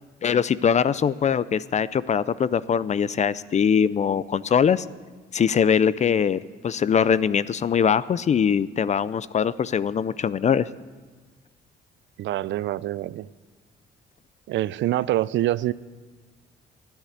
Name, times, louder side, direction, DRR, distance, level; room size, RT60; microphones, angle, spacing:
voice 1, 0.2-4.8 5.3-10.7, left 7 dB, 35° left, 18 dB, 0.4 m, -22 dB
voice 2, 12.2-13.3 14.5-15.7, right 14 dB, 70° right, 19 dB, 0.4 m, -25 dB
12.0 x 10.0 x 8.0 m, 1.4 s
cardioid pair, 90°, 20 cm